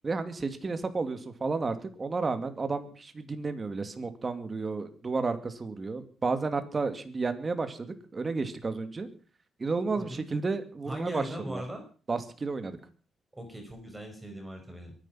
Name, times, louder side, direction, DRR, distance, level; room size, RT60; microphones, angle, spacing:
voice 1, 0.0-9.1 9.6-11.6 12.1-12.8, right 4 dB, 30° right, 9 dB, 2.5 m, -32 dB
voice 2, 10.9-11.8 13.4-15.0, right 1 dB, 10° right, 4 dB, 5.2 m, -39 dB
23.0 x 10.5 x 5.8 m, 0.40 s
cardioid pair, 115°, 0 cm